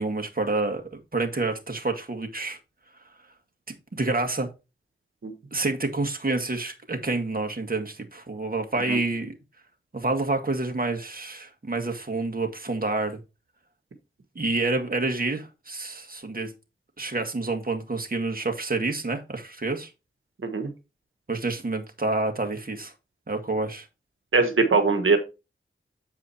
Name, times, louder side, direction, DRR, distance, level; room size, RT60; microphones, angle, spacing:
voice 1, 0.0-2.6 3.7-4.5 5.5-9.3 9.9-13.2 14.4-16.5 17.0-19.9 21.3-22.9 23.3-23.9, right 3 dB, 45° right, 1.9 m, -28 dB
voice 2, 24.3-25.2, right 4 dB, 75° right, 1.5 m, -21 dB
8.4 x 4.9 x 4.3 m
cardioid pair, 50°, 21 cm